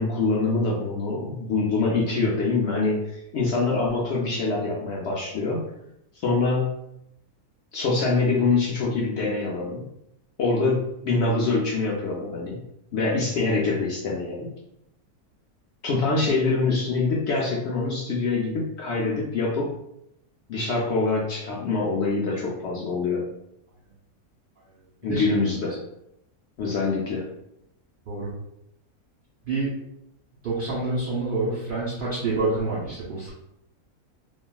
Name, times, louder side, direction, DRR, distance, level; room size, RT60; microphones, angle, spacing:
voice 1, 0.0-5.6 6.2-6.8 7.7-9.8 10.4-12.6 12.9-14.5 15.8-19.7 20.5-23.3 25.0-25.8 26.6-27.3, left 3 dB, 70° left, -3 dB, 0.6 m, -25 dB
voice 2, 30.4-33.3, right 3 dB, 50° right, -7 dB, 0.6 m, -27 dB
3.0 x 2.4 x 2.2 m, 0.79 s
omnidirectional pair, 1.6 m